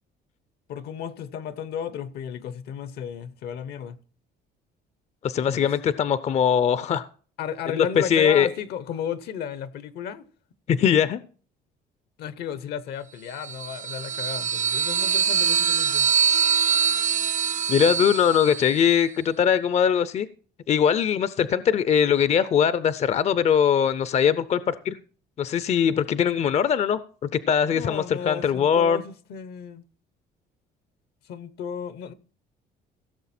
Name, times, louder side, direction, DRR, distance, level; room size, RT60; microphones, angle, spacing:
voice 1, 0.7-4.0 5.4-5.7 7.4-10.3 12.2-16.1 27.6-29.8 31.2-32.1, left 8 dB, 70° left, 0.8 m, -34 dB
voice 2, 5.2-7.0 7.8-8.5 10.7-11.2 17.7-20.3 20.7-25.0 25.4-27.0 27.5-29.0, left 8 dB, 40° left, 0.5 m, -21 dB
sound 1, 13.4-18.8, right 7 dB, 50° right, 0.5 m, -24 dB
16.5 x 6.8 x 4.3 m
cardioid pair, 110°, 17 cm